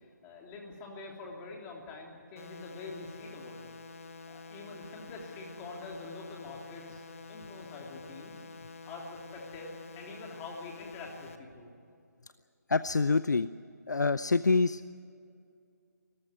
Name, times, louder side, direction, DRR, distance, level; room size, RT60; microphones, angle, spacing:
voice 1, 0.2-3.7 4.3-7.0 7.3-8.3 8.9-11.7, left 3 dB, 15° left, 0 dB, 3.2 m, -45 dB
sound 1, 2.4-11.4, left 4 dB, 50° left, 1.7 m, -48 dB
voice 2, 12.7-13.5 13.9-14.8, left 4 dB, 80° left, 14 dB, 0.6 m, -26 dB
24.0 x 14.5 x 9.7 m, 2.4 s
figure-of-eight pair, 155°, 9 cm